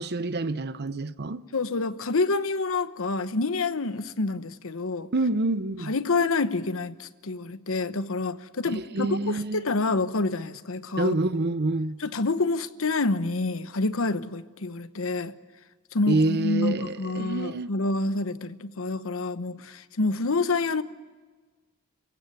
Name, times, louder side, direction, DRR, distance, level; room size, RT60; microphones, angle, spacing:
voice 1, 0.0-1.4 5.1-5.9 8.7-9.6 11.0-12.0 16.1-17.7, right 2 dB, 50° right, 0.8 m, -27 dB
voice 2, 1.5-5.1 5.9-11.1 12.0-15.3 15.9-20.8, left 3 dB, 65° left, 1.0 m, -27 dB
28.0 x 16.0 x 9.6 m
head